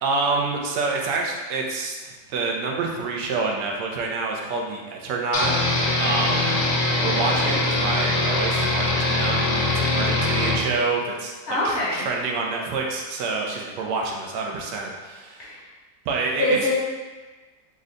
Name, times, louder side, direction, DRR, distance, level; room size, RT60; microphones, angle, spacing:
voice 1, 0.0-5.5 6.0-6.6 7.0-11.3 11.6-15.5 16.0-16.6, right 3 dB, 85° right, 0 dB, 1.2 m, -27 dB
sound 1, 5.3-10.6, left 2 dB, 75° left, 1.2 m, -22 dB
voice 2, 7.3-7.7 11.5-12.0 15.4-15.6 16.4-16.7, left 1 dB, 50° left, -9 dB, 0.8 m, -25 dB
3.7 x 2.2 x 3.7 m, 1.3 s
omnidirectional pair, 1.8 m